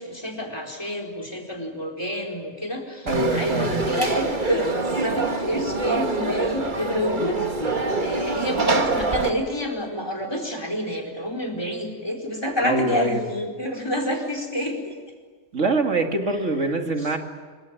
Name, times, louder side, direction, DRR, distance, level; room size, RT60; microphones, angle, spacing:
voice 1, 0.0-7.4 8.0-15.0 17.0-17.1, left 1 dB, 20° left, 4 dB, 4.5 m, -28 dB
Conversation / Crowd, 3.1-9.3, right 3 dB, 40° right, 1.9 m, -25 dB
voice 2, 3.1-3.8 12.6-13.2 15.5-17.2, right 2 dB, 75° right, 4 dB, 2.6 m, -24 dB
26.5 x 24.0 x 9.0 m, 1.5 s
omnidirectional pair, 1.3 m